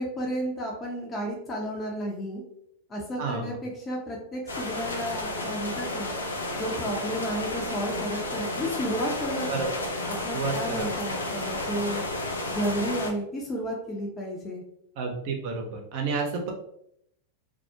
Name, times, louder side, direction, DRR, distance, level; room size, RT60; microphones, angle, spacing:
voice 1, 0.0-2.4 2.9-6.1 6.6-9.5 10.1-12.0 12.5-14.6, equal, 25° left, -2 dB, 0.6 m, -32 dB
voice 2, 3.2-3.6 9.5-9.7 10.3-10.9 15.0-16.5, right 4 dB, 55° right, 3 dB, 0.6 m, -30 dB
sound 1, 4.5-13.1, left 1 dB, 90° left, 0.4 m, -32 dB
2.3 x 2.0 x 2.7 m, 0.73 s
hypercardioid pair, 100°, 0 cm